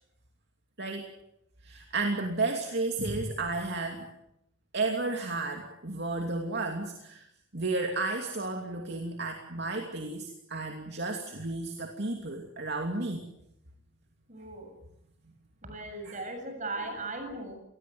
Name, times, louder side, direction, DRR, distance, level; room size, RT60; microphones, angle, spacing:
voice 1, 0.8-1.1 1.6-4.1 4.7-7.3 7.5-13.2 16.0-16.2, right 3 dB, 55° right, 3 dB, 2.8 m, -32 dB
voice 2, 14.3-14.7 15.6-17.6, right 2 dB, 35° right, 6 dB, 7.6 m, -38 dB
28.5 x 21.0 x 7.9 m, 0.81 s
head